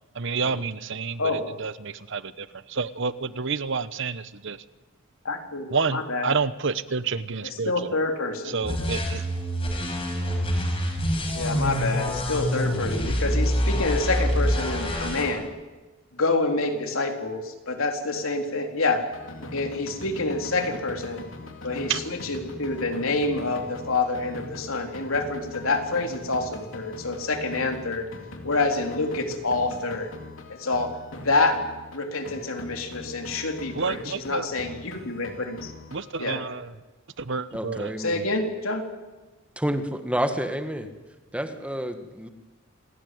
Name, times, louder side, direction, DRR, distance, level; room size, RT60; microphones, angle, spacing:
voice 1, 0.2-1.2 1.6-4.6 5.7-7.7 8.5-9.2 21.9-22.0 33.8-34.5 35.9-36.7 37.2-37.9, right 5 dB, 60° right, 15 dB, 1.0 m, -29 dB
voice 2, 5.2-6.3 7.4-8.9 11.3-15.5 16.1-19.0 19.5-21.2 21.6-28.1 28.4-30.1 30.5-30.9 31.2-31.6 31.9-35.7 36.2-36.4 38.0-38.8, left 3 dB, 85° left, 4 dB, 3.7 m, -27 dB
sound 1, 8.6-15.2, equal, 25° left, 6.0 m, -26 dB
sound 2, 19.1-32.0 32.3-36.1, left 2 dB, 65° left, 3.3 m, -42 dB
voice 3, 37.5-38.2 39.5-40.9 41.3-42.3, equal, 5° right, 8 dB, 1.7 m, -29 dB
27.0 x 18.5 x 9.4 m, 1.2 s
head